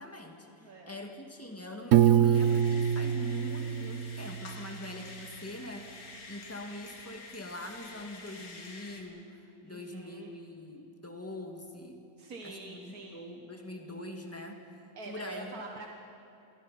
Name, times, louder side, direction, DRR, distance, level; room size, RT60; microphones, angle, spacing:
voice 1, 0.0-12.0 12.4-15.6, left 1 dB, 10° left, 2 dB, 2.2 m, -43 dB
voice 2, 0.6-0.9 9.6-10.3 12.2-13.2 15.0-15.9, right 2 dB, 80° right, 1 dB, 2.0 m, -45 dB
Piano, 1.9-4.8, right 9 dB, 65° right, 1.0 m, -25 dB
sound 1, 2.3-9.0, left 3 dB, 75° left, 2.6 m, -48 dB
29.0 x 23.5 x 5.7 m, 2.8 s
omnidirectional pair, 1.5 m